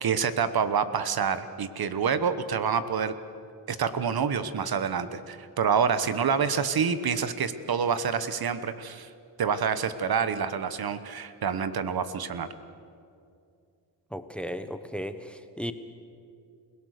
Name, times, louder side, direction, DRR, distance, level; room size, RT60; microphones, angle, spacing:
voice 1, 0.0-3.1 3.7-9.1 9.4-12.5, right 6 dB, 55° right, 12 dB, 1.2 m, -27 dB
voice 2, 14.1-15.7, equal, 5° left, 11 dB, 1.1 m, -35 dB
28.0 x 17.5 x 6.6 m, 2.5 s
cardioid pair, 90°, 43 cm